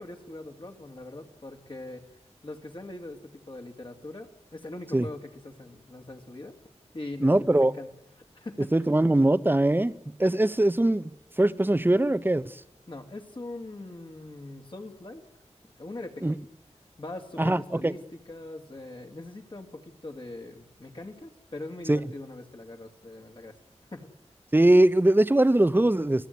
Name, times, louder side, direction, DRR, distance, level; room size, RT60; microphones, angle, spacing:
voice 1, 0.0-2.0 2.4-6.6 6.9-7.9 8.3-8.7 12.9-15.2 15.8-16.3 17.0-18.0 18.3-23.5 23.9-24.2, left 2 dB, 45° left, 2.6 m, -41 dB
voice 2, 7.2-7.7 8.6-9.9 10.2-11.1 11.4-12.6 16.2-16.4 17.4-17.9 21.9-22.0 24.5-26.3, right 1 dB, 15° right, 0.8 m, -21 dB
29.5 x 17.0 x 9.5 m
wide cardioid pair, 80°, 12 cm